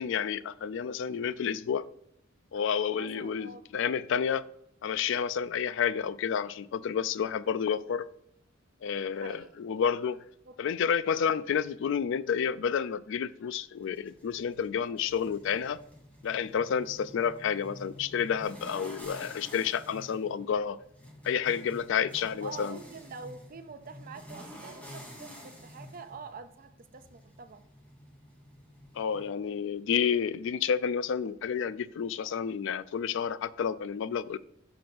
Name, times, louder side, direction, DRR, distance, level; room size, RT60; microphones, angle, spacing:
voice 1, 0.0-1.9 2.5-4.4 4.8-8.1 8.8-10.2 10.6-15.8 16.2-20.8 21.2-22.8 28.9-34.4, left 7 dB, 65° left, 0.3 m, -30 dB
voice 2, 2.9-3.6 9.1-9.6 10.5-10.6 22.4-27.6, right 5 dB, 45° right, 0.5 m, -46 dB
sound 1, 13.8-29.3, equal, 5° left, 1.4 m, -49 dB
6.0 x 3.8 x 5.2 m
head